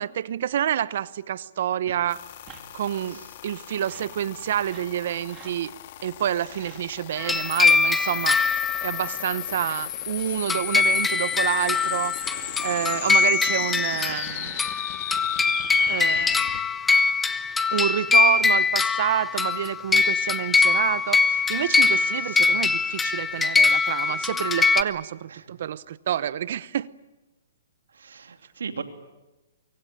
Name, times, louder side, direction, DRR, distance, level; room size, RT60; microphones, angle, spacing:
voice 1, 0.0-2.2 2.7-5.7 6.0-8.4 8.8-12.2 12.6-14.6 15.9-16.5 17.7-26.9, right 10 dB, 55° right, 0.8 m, -28 dB
sound 1, 1.8-2.0 2.4-2.6 3.7-4.1 4.6-4.9 5.3-5.6 6.5-6.8 7.3-7.6 8.1-8.4 9.4-9.8 10.9-13.1 13.9-14.7 15.5-16.3, right 8 dB, 25° right, 3.5 m, -47 dB
sound 2, 2.1-16.6, left 13 dB, 45° left, 2.0 m, -36 dB
sound 3, 7.2-9.2 10.5-24.8, left 4 dB, 10° left, 1.0 m, -22 dB
voice 2, 22.2-22.6 25.3-25.5 27.9-28.8, right 6 dB, 85° right, 2.8 m, -38 dB
24.5 x 24.0 x 8.9 m
hypercardioid pair, 150°, 0 cm